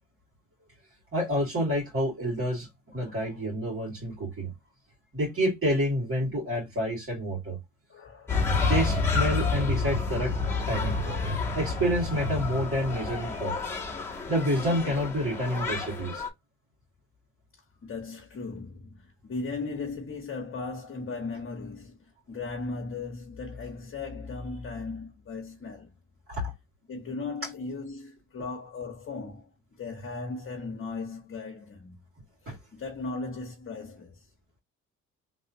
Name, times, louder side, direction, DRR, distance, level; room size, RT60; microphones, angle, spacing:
voice 1, 1.1-2.7 2.9-4.5 5.1-7.6 8.7-10.3 10.7-11.0 11.5-13.5 14.3-16.2 26.3-26.5 32.5-32.6, equal, 45° right, 2.1 m, -28 dB
voice 2, 2.9-3.9 7.9-8.4 11.4-11.7 17.8-25.9 26.9-29.5 29.8-32.0 32.4-34.3, left 3 dB, 45° left, 1.2 m, -37 dB
sound 1, 8.3-16.3, left 3 dB, 10° left, 1.3 m, -29 dB
3.4 x 2.7 x 2.8 m
cardioid pair, 90°, 30 cm